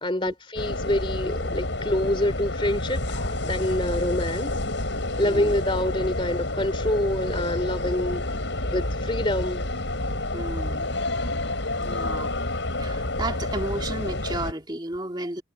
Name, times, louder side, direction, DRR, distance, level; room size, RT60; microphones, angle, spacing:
voice 1, 0.0-4.5 5.2-8.2 8.7-9.7, left 1 dB, 25° left, 3.1 m, -26 dB
sound 1, 0.6-14.5, left 2 dB, 70° left, 5.5 m, -29 dB
voice 2, 5.2-5.5 10.3-10.9 11.8-12.4 12.8-15.4, right 2 dB, 20° right, 2.2 m, -33 dB
head